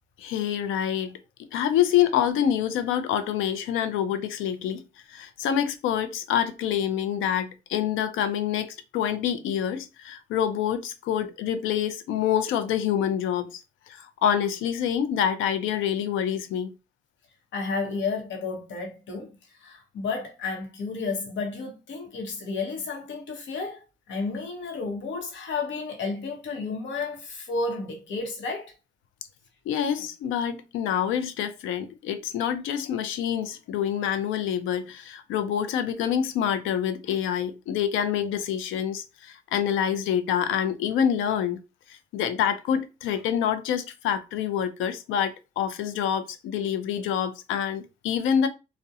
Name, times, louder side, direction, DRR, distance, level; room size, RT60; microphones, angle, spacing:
voice 1, 0.2-1.2 1.5-4.8 5.1-16.7 29.7-41.6 42.1-48.5, left 9 dB, 85° left, 0.4 m, -26 dB
voice 2, 17.5-28.7, left 4 dB, 65° left, 0.8 m, -32 dB
2.3 x 2.1 x 2.7 m
cardioid pair, 90°, 20 cm